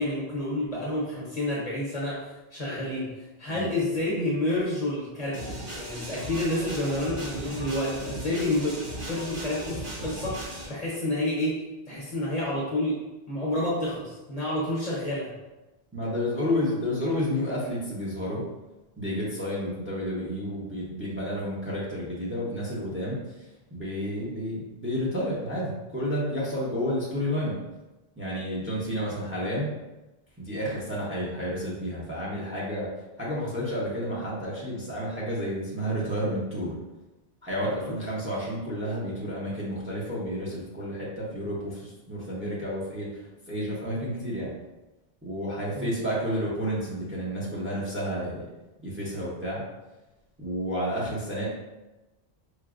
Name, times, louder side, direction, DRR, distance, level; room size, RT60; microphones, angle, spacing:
voice 1, 0.0-2.2 2.5-3.1 3.4-8.8 9.1-11.6 11.9-13.0 13.3-15.3 37.7-38.0 45.7-45.9, left 1 dB, 40° left, -6 dB, 0.8 m, -29 dB
sound 1, 5.3-10.7, right 1 dB, 80° right, 1.9 m, -37 dB
voice 2, 15.9-18.4 19.0-23.2 23.7-27.6 28.2-29.7 30.4-32.9 33.2-36.8 37.4-43.2 43.5-44.5 45.2-48.4 48.8-49.6 50.4-51.5, equal, 15° right, -6 dB, 0.6 m, -30 dB
4.7 x 2.1 x 2.4 m, 1.0 s
omnidirectional pair, 1.1 m